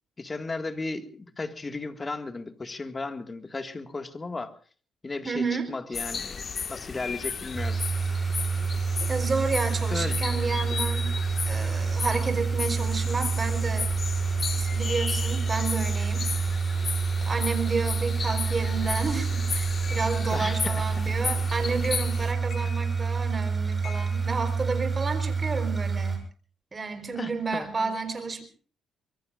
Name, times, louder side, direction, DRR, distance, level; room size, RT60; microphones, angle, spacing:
voice 1, 0.2-4.5 5.0-7.8 9.9-10.2 20.3-20.8 22.6-22.7 27.2-28.0, left 3 dB, 25° left, 9 dB, 1.9 m, -35 dB
voice 2, 5.2-5.7 9.1-11.1 11.5-13.9 14.5-16.2 17.2-26.2 26.7-28.4, right 4 dB, 30° right, 9 dB, 4.2 m, -31 dB
sound 1, 5.9-22.3, left 5 dB, 45° left, 1.7 m, -35 dB
sound 2, 7.5-26.2, right 5 dB, 15° right, 7.4 m, -28 dB
sound 3, 19.6-19.7 20.3-20.6 21.1-21.4 21.8-22.2 22.5-23.3 23.8-25.1, left 6 dB, 60° left, 5.0 m, -47 dB
25.0 x 22.0 x 2.5 m, 0.41 s
cardioid pair, 90°, 0 cm